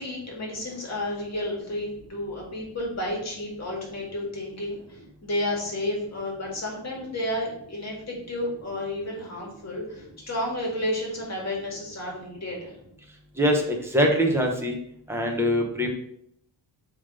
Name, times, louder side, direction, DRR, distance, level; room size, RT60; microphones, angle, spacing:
voice 1, 0.0-12.7, left 1 dB, 35° left, -2 dB, 2.1 m, -31 dB
voice 2, 13.4-14.8 15.1-15.9, equal, 5° right, 1 dB, 1.1 m, -23 dB
5.0 x 3.8 x 5.0 m, 0.71 s
cardioid pair, 120°, 46 cm